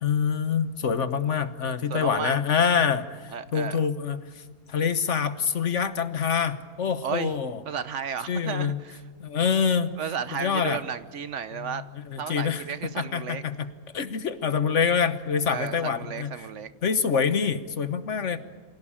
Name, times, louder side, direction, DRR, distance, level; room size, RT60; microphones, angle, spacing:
voice 1, 0.0-4.4 4.7-7.6 8.3-8.8 9.2-9.9 10.3-10.8 11.5-12.6 13.0-13.7 13.9-16.3 16.8-18.4, left 6 dB, 55° left, 11 dB, 1.4 m, -26 dB
voice 2, 1.9-2.4 3.3-3.8 7.0-7.3 7.6-9.0 10.0-11.8 12.2-13.4 15.5-16.7, right 7 dB, 55° right, 13 dB, 1.2 m, -33 dB
26.0 x 17.0 x 8.7 m, 1.5 s
omnidirectional pair, 1.5 m